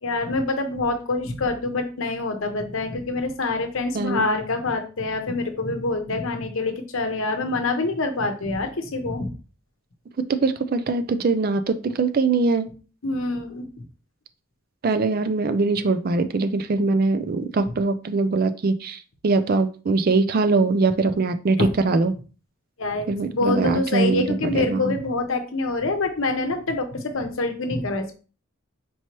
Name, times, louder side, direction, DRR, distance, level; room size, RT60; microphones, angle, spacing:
voice 1, 0.0-9.3 13.0-13.8 21.6-21.7 22.8-28.2, left 3 dB, 70° left, 5 dB, 0.8 m, -26 dB
voice 2, 3.9-4.3 10.4-12.6 14.8-22.1 23.1-24.9, right 3 dB, 45° right, 10 dB, 0.3 m, -22 dB
4.6 x 2.9 x 2.9 m, 0.36 s
head